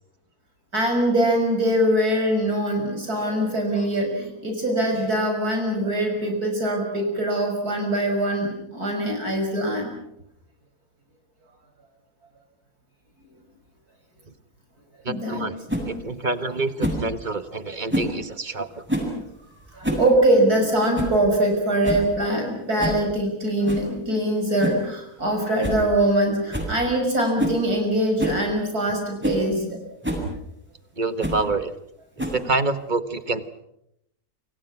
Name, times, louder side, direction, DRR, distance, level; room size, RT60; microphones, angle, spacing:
voice 1, 0.7-9.9 15.1-15.5 19.7-29.8, right 1 dB, 85° right, 3 dB, 6.5 m, -23 dB
voice 2, 15.0-15.6 15.9-18.8 31.0-31.7 32.3-33.6, right 3 dB, 35° right, 11 dB, 1.5 m, -27 dB
sound 1, 15.7-15.9 16.8-17.1 17.9-18.2 18.9-19.2 19.7-20.1 20.4-20.5 20.9-21.2 21.5-21.6 21.8-22.1 22.8-23.0 23.7-23.9 24.6-24.9 25.2-25.3 25.6-25.8 26.1-26.2 26.5-26.7 27.4-27.6 28.2-28.4 28.9-29.0 29.2-29.4 30.0-30.3 31.2-31.4 32.2-32.6, right 1 dB, 5° right, 7.6 m, -26 dB
29.0 x 26.0 x 6.1 m, 0.78 s
omnidirectional pair, 1.6 m